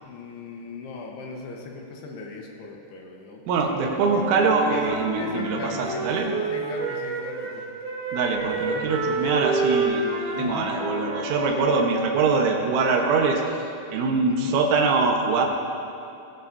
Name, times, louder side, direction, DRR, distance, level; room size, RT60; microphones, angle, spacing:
voice 1, 0.0-4.2 4.7-4.8 5.2-6.1 6.5-7.7 8.7-8.9 10.0-10.7 14.3-14.6, left 3 dB, 70° left, 0 dB, 2.9 m, -38 dB
voice 2, 3.5-6.3 8.1-13.4 13.9-15.5, right 4 dB, 85° right, 1 dB, 3.7 m, -23 dB
Wind instrument woodwind instrument, 3.8-7.5 7.8-12.2, right 3 dB, 50° right, 2.6 m, -29 dB
18.5 x 15.5 x 2.7 m, 2.7 s
omnidirectional pair, 5.4 m